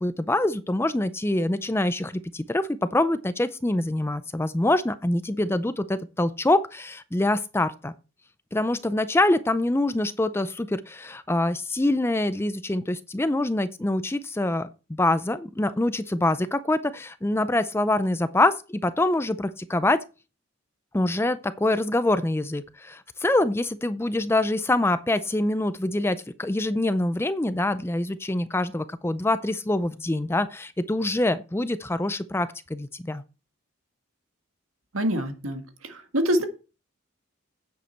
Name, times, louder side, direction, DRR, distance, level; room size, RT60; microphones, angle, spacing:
voice 1, 0.0-7.9 8.5-20.0 20.9-33.2, left 2 dB, 10° left, 0.4 m, -25 dB
voice 2, 34.9-36.5, equal, 75° right, 1.8 m, -26 dB
9.5 x 7.8 x 4.4 m
head